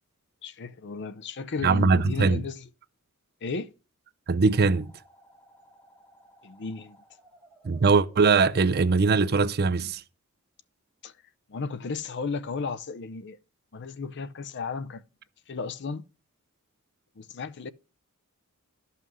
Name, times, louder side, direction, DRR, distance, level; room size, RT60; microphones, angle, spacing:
voice 1, 0.4-2.7 3.4-3.7 6.4-7.0 11.0-11.1 11.5-13.4 13.7-15.0 15.5-16.0 17.2-17.7, left 4 dB, 50° left, 0.6 m, -34 dB
voice 2, 1.6-2.4 4.3-4.9 7.6-10.0, right 4 dB, 45° right, 0.5 m, -21 dB
sound 1, 4.5-10.0, equal, 5° left, 6.5 m, -57 dB
12.5 x 5.7 x 6.1 m
head